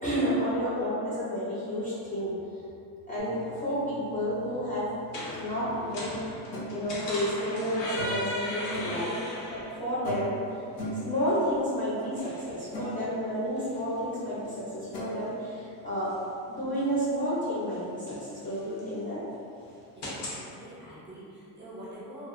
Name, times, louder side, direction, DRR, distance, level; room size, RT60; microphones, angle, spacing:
voice 1, 0.0-2.3 3.1-4.8 5.1-6.1 6.7-9.1 9.5-10.4 11.0-16.1 16.5-19.2, equal, 20° left, -10 dB, 0.5 m, -31 dB
sound 1, 3.2-20.4, equal, 90° left, 0.9 m, -41 dB
sound 2, 6.5-6.7 8.0-8.3 8.7-9.0 10.0-10.4 10.8-11.1 12.0-12.1 12.5-12.9 14.1-14.2 14.9-15.1, right 1 dB, 60° left, 0.8 m, -37 dB
voice 2, 19.9-22.3, equal, 25° right, -8 dB, 0.6 m, -45 dB
2.8 x 2.3 x 2.5 m, 2.5 s
cardioid pair, 155°, 41 cm